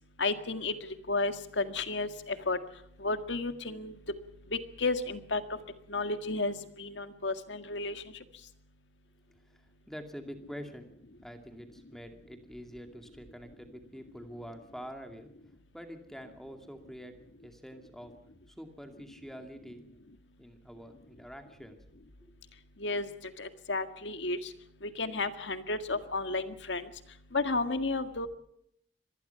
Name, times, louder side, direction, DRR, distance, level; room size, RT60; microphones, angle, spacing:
voice 1, 0.2-0.7 1.1-2.6 3.0-3.9 4.5-5.4 5.9-8.0 22.8-23.1 23.4-24.5 24.8-26.9 27.3-28.3, left 3 dB, 90° left, 9 dB, 1.8 m, -32 dB
voice 2, 9.5-10.9 11.2-15.3 15.7-17.1 17.4-18.1 18.5-19.8 20.4-21.8, equal, ahead, 6 dB, 2.3 m, -46 dB
25.5 x 19.5 x 5.7 m, 0.74 s
head